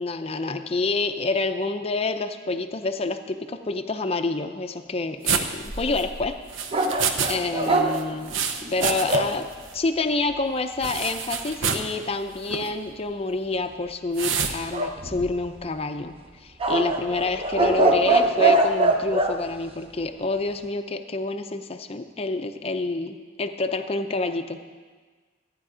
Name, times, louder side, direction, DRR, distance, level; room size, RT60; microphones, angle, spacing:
voice 1, 0.0-6.4 7.3-8.4 8.7-9.5 9.7-24.6, left 3 dB, 30° left, 7 dB, 0.5 m, -28 dB
sound 1, 5.2-7.4 7.6-9.4 9.7-9.8 10.8-11.9 12.4-12.7 14.1-14.6, right 6 dB, 75° right, 0.9 m, -28 dB
sound 2, 6.7-9.3 14.7-15.6 16.6-19.4, right 2 dB, 30° right, 0.8 m, -22 dB
14.5 x 9.5 x 5.0 m, 1.5 s
head